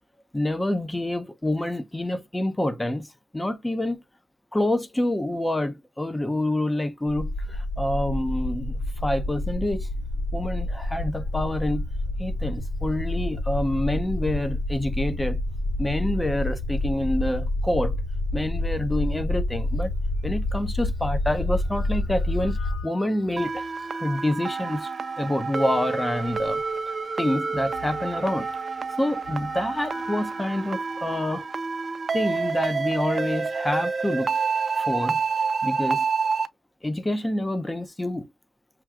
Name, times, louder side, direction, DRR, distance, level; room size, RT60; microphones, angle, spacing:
voice 1, 0.3-4.0 4.5-9.9 10.3-11.9 12.2-15.4 15.8-18.0 18.3-19.9 20.2-24.9 25.2-26.6 26.9-28.5 29.0-31.5 32.1-34.4 34.8-35.2 35.6-36.1 36.8-38.3, left 1 dB, 10° left, 0.5 m, -27 dB
sound 1, 7.1-22.8, left 1 dB, 40° left, 1.6 m, -28 dB
sound 2, 20.2-20.3 21.2-25.5 26.3-30.9, left 5 dB, 65° left, 3.0 m, -48 dB
sound 3, 23.4-36.5, right 4 dB, 35° right, 0.5 m, -28 dB
5.9 x 2.3 x 2.3 m
cardioid pair, 90°, 0 cm